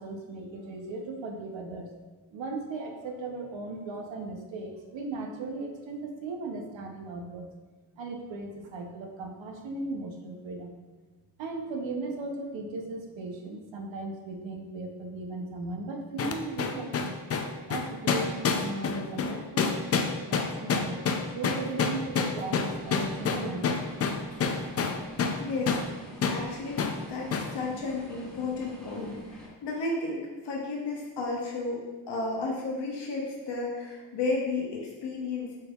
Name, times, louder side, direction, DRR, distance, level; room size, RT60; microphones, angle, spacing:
voice 1, 0.0-1.9 2.3-7.5 8.0-10.7 11.4-17.2 17.7-19.7 20.2-21.1 21.3-23.8, right 3 dB, 75° right, 3 dB, 0.7 m, -37 dB
sound 1, 16.2-25.4 25.7-25.9 26.2-26.4 26.8-27.0 27.3-27.5, left 5 dB, 35° left, 0.4 m, -28 dB
sound 2, 21.3-29.5, equal, ahead, 1.5 m, -47 dB
voice 2, 25.4-25.8 26.3-26.8 27.1-31.8 32.1-35.6, left 3 dB, 65° left, -2 dB, 0.9 m, -33 dB
4.4 x 3.3 x 2.3 m, 1.2 s
cardioid pair, 60°, 46 cm